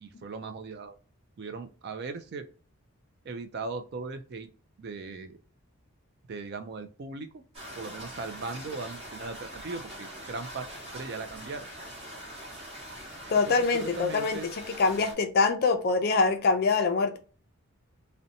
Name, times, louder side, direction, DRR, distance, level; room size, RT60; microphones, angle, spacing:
voice 1, 0.0-1.0 1.4-2.5 3.2-4.5 4.8-5.4 6.3-7.4 7.7-10.7 10.9-11.7 13.5-14.5, right 4 dB, 45° right, 9 dB, 0.3 m, -38 dB
sound 1, 7.5-15.1, equal, 25° right, 1.0 m, -43 dB
voice 2, 13.3-14.4 14.7-17.2, left 4 dB, 45° left, 6 dB, 0.4 m, -24 dB
2.6 x 2.1 x 2.7 m, 0.37 s
head